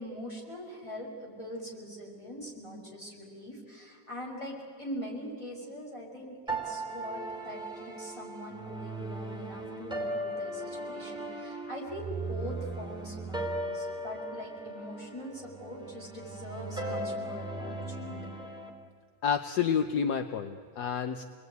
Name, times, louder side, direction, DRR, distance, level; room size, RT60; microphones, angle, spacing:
voice 1, 0.0-18.2, equal, 15° left, -2 dB, 6.0 m, -42 dB
sound 1, 6.5-18.7, right 1 dB, ahead, 3.2 m, -38 dB
voice 2, 19.2-21.2, left 7 dB, 65° left, 8 dB, 1.5 m, -29 dB
28.0 x 20.5 x 9.4 m, 2.3 s
omnidirectional pair, 2.0 m